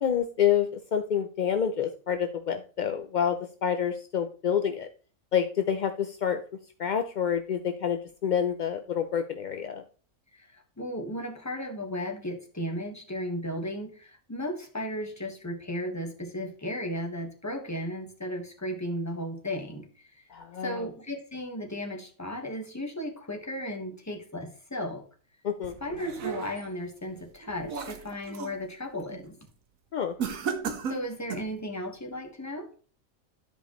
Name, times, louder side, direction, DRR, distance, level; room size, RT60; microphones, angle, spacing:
voice 1, 0.0-4.9 5.3-6.4 6.8-9.8 20.3-20.9 25.4-25.8 29.9-30.1, left 8 dB, 60° left, 7 dB, 0.5 m, -28 dB
voice 2, 10.3-19.9 20.2-20.3 20.6-25.0 25.8-29.3 30.9-32.7, equal, 15° left, 3 dB, 1.3 m, -35 dB
sound 1, 25.6-26.8 27.3-28.6 29.0-29.3 30.2-31.6, right 6 dB, 85° right, 1.4 m, -35 dB
12.0 x 5.1 x 3.0 m, 0.40 s
omnidirectional pair, 1.4 m